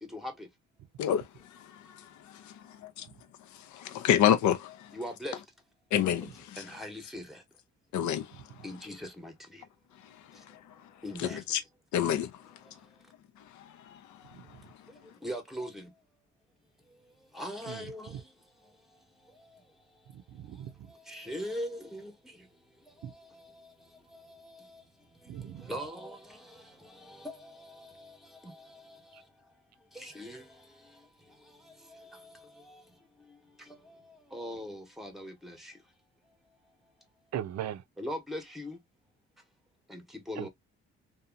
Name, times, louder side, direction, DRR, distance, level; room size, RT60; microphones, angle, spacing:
voice 1, 0.0-0.5 4.9-5.4 6.2-6.3 6.6-7.4 8.6-9.6 11.0-11.4 14.9-15.9 17.3-18.3 18.6-18.7 19.2-19.6 20.9-22.5 23.0-24.8 25.2-29.2 29.9-32.8 33.2-35.8 38.0-38.8 39.9-40.5, equal, ahead, 0.9 m, -42 dB
voice 2, 1.0-2.6 3.5-5.0 5.9-6.6 7.9-8.5 10.0-10.6 11.2-11.6 11.9-12.3 13.5-14.6, left 10 dB, 75° left, 0.6 m, -30 dB
voice 3, 20.1-20.7 23.0-23.1 25.3-25.7 37.3-37.8 40.4-40.5, right 10 dB, 60° right, 0.5 m, -38 dB
2.7 x 2.3 x 2.4 m
cardioid pair, 90°, 30 cm